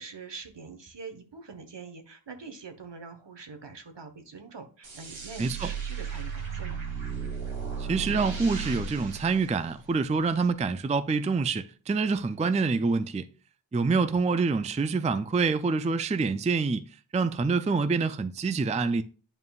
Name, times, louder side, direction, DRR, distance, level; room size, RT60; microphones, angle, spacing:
voice 1, 0.0-6.8, right 4 dB, 65° right, 1.2 m, -44 dB
sound 1, 4.8-10.2, right 6 dB, 90° right, 1.5 m, -35 dB
voice 2, 5.4-5.7 7.8-13.3 13.7-16.9 17.1-19.0, right 4 dB, 15° right, 0.3 m, -26 dB
9.4 x 5.4 x 2.4 m
wide cardioid pair, 60°, 46 cm